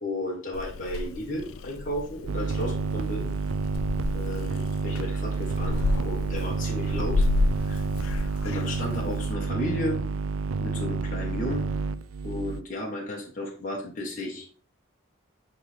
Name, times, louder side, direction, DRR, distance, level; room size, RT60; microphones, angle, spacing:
voice 1, 0.0-3.3 4.1-7.2 7.6-7.8 8.4-10.0 10.6-11.7 12.2-14.4, left 1 dB, 40° left, -4 dB, 1.5 m, -33 dB
Purr / Meow, 0.5-9.3, left 2 dB, 80° left, 0.5 m, -31 dB
sound 1, 2.3-12.6, right 4 dB, 75° right, 0.4 m, -29 dB
9.2 x 3.7 x 3.6 m, 0.43 s
head